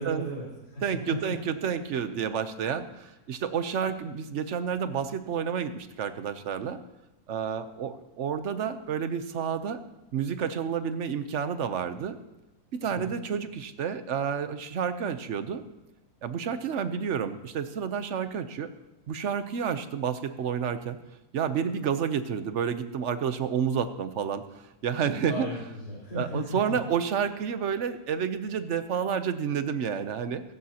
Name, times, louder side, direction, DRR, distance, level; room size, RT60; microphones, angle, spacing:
voice 1, 0.0-1.1 12.9-13.1 25.2-26.8, equal, 80° left, -9 dB, 4.8 m, -36 dB
voice 2, 0.8-6.8 7.3-9.8 10.1-12.2 12.7-15.6 16.2-18.7 19.1-21.0 21.3-25.5 26.1-30.4, right 7 dB, 55° right, 10 dB, 1.0 m, -30 dB
16.5 x 15.5 x 2.9 m, 0.97 s
omnidirectional pair, 1.7 m